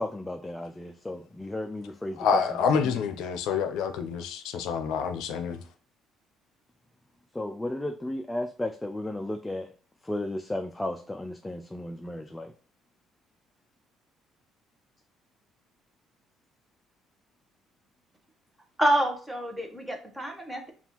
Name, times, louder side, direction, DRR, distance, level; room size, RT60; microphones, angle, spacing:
voice 1, 0.0-3.0 7.3-9.7 10.0-12.5, left 1 dB, 10° left, 0.3 m, -34 dB
voice 2, 2.2-5.6, left 6 dB, 80° left, 0.5 m, -27 dB
voice 3, 18.8-20.7, right 1 dB, 10° right, 0.9 m, -27 dB
5.3 x 2.4 x 2.9 m
cardioid pair, 110°, 0 cm